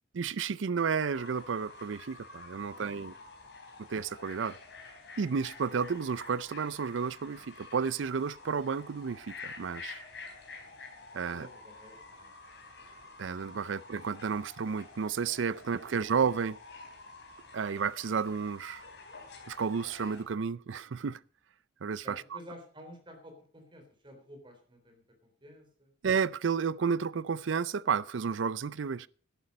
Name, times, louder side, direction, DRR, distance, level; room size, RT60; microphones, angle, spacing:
voice 1, 0.1-3.1 3.9-4.6 5.2-10.0 11.1-11.5 13.2-16.6 17.5-18.8 19.5-21.2 21.8-22.2 26.0-29.1, right 6 dB, 75° right, 0.5 m, -32 dB
Fowl / Bird, 1.1-20.2, left 3 dB, 60° left, 3.8 m, -49 dB
voice 2, 2.5-3.2 10.6-10.7 11.1-12.3 22.0-25.9, equal, 25° right, 3.5 m, -52 dB
11.5 x 11.0 x 5.2 m
head